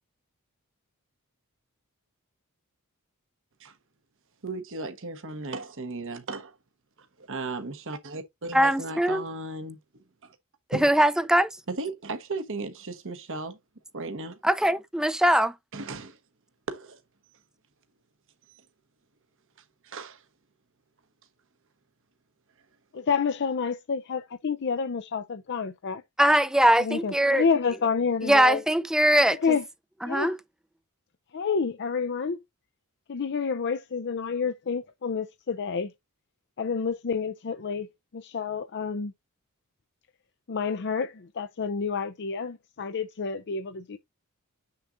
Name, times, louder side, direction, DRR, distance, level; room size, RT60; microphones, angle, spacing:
voice 1, 4.4-6.6 7.0-9.8 10.2-10.4 10.7-10.9 11.7-13.6 13.9-14.3 15.7-16.2 16.7-17.0 17.3-17.4 18.4-18.6 19.8-20.2, right 3 dB, 60° right, 1.1 m, -36 dB
voice 2, 8.5-9.2 10.7-11.5 14.4-15.5 26.2-27.4 28.3-29.4 30.0-30.4, right 1 dB, 5° right, 0.5 m, -21 dB
voice 3, 22.9-26.0 26.8-28.6 29.3-29.7 30.1-30.4 31.3-32.4 33.1-35.9 36.6-37.9 38.1-39.1 40.5-44.0, left 5 dB, 50° left, 0.5 m, -29 dB
7.3 x 6.7 x 2.6 m
head